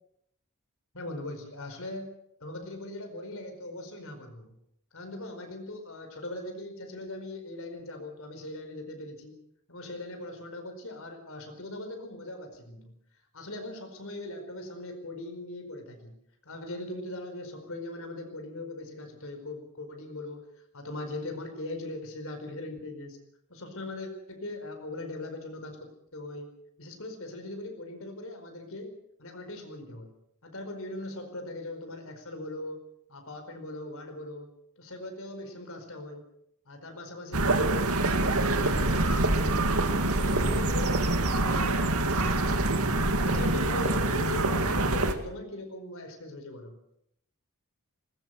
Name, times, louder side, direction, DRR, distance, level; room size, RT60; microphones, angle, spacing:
voice 1, 0.9-2.1 2.4-4.5 4.9-9.4 9.7-12.9 13.3-16.2 16.4-20.4 20.7-23.2 23.5-26.5 26.8-30.1 30.4-32.8 33.1-36.2 36.6-39.8 40.0-42.6 43.1-46.8, left 2 dB, 65° left, 6 dB, 4.9 m, -40 dB
sound 1, 37.3-45.1, right 2 dB, 75° right, 2.3 m, -25 dB
21.0 x 20.5 x 6.7 m, 0.74 s
head